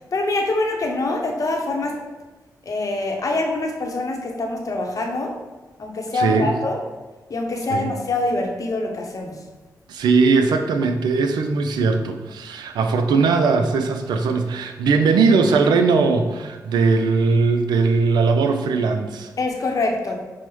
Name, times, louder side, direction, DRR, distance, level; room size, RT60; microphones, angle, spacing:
voice 1, 0.1-2.0 2.6-5.3 5.8-6.8 7.3-9.3 19.4-20.1, left 2 dB, 55° left, 2 dB, 0.7 m, -24 dB
voice 2, 6.1-6.5 7.7-7.9 9.9-19.3, right 4 dB, 90° right, 6 dB, 0.3 m, -19 dB
6.1 x 2.0 x 3.0 m, 1.2 s
cardioid pair, 55°, 7 cm